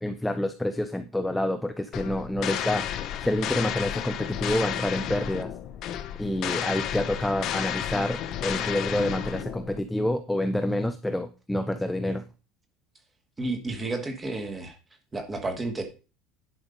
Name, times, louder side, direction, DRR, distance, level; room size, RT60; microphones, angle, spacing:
voice 1, 0.0-2.9 3.2-5.5 6.2-12.2, left 1 dB, 5° left, 8 dB, 0.5 m, -28 dB
sound 1, 1.9-9.8, left 10 dB, 40° left, 0.8 m, -32 dB
voice 2, 13.4-14.8 15.1-15.8, right 2 dB, 15° right, 6 dB, 1.5 m, -31 dB
10.5 x 5.5 x 5.1 m, 0.34 s
cardioid pair, 180°, 0 cm